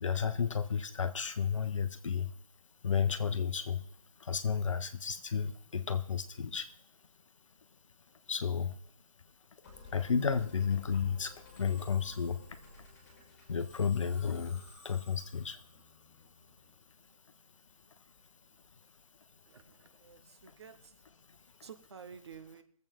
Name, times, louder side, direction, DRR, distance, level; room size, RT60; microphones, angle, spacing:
voice 1, 0.0-2.3 2.8-3.8 4.2-6.7 8.3-8.8 9.9-12.4 13.5-15.6, left 6 dB, 60° left, 11 dB, 1.1 m, -32 dB
Musical instrument, 9.6-17.0, left 3 dB, 30° left, 4.4 m, -54 dB
voice 2, 19.5-20.8 21.6-22.6, right 6 dB, 45° right, 9 dB, 1.0 m, -51 dB
22.0 x 8.0 x 3.7 m, 0.63 s
figure-of-eight pair, 155°, 19 cm